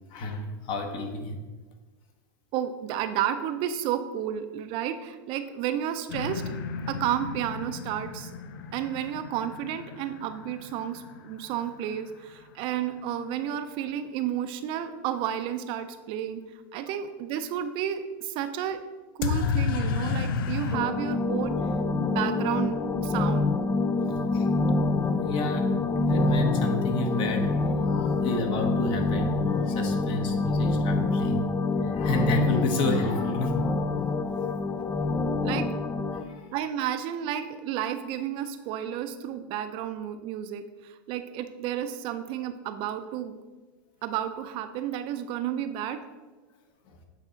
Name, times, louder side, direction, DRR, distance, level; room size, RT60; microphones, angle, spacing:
voice 1, 0.1-1.4 19.2-19.5 23.2-23.3 24.3-24.5 25.1-25.7 26.0-31.5 31.8-34.2 34.9-35.0 36.1-36.5 46.9-47.0, left 2 dB, 45° left, 4 dB, 1.1 m, -31 dB
voice 2, 2.5-6.4 6.9-8.3 8.7-16.4 16.7-18.8 19.2-21.6 22.0-23.5 35.4-35.7 36.5-43.4 44.0-46.0, right 10 dB, 45° right, 9 dB, 0.5 m, -31 dB
sound 1, 6.1-11.9 19.2-20.8, left 6 dB, 70° left, 0.6 m, -32 dB
sound 2, 20.7-36.2, left 3 dB, 15° left, 0.3 m, -26 dB
8.3 x 4.1 x 3.9 m, 1.3 s
hypercardioid pair, 115°, 12 cm